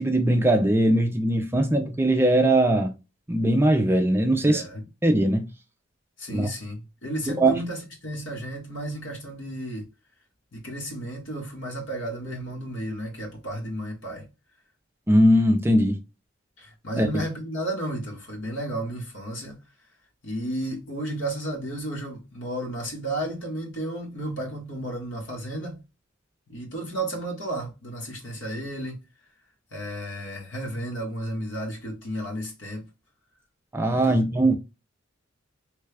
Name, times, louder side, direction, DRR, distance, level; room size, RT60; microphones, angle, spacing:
voice 1, 0.0-2.9 3.3-4.6 5.0-5.5 6.3-6.5 7.4-7.5 15.1-16.0 17.0-17.2 33.7-34.5, right 1 dB, 10° right, 0.4 m, -20 dB
voice 2, 4.4-4.8 6.2-9.9 10.5-14.3 16.6-19.6 20.2-25.8 26.5-29.0 29.7-32.9 33.9-34.4, right 1 dB, 65° left, 1.4 m, -33 dB
3.2 x 2.3 x 3.2 m
head